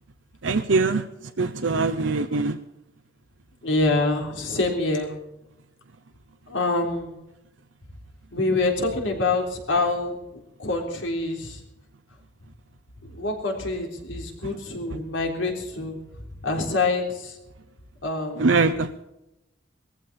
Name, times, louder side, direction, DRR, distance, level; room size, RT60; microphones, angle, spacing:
voice 1, 0.4-1.1 1.4-2.6 18.4-19.0, right 3 dB, 75° right, 7 dB, 0.8 m, -22 dB
voice 2, 3.6-5.1 6.5-7.2 8.3-10.1 10.6-11.6 13.0-16.0 16.4-17.4 18.0-18.6, left 3 dB, 75° left, 2 dB, 3.5 m, -26 dB
19.5 x 14.5 x 4.3 m, 0.91 s
head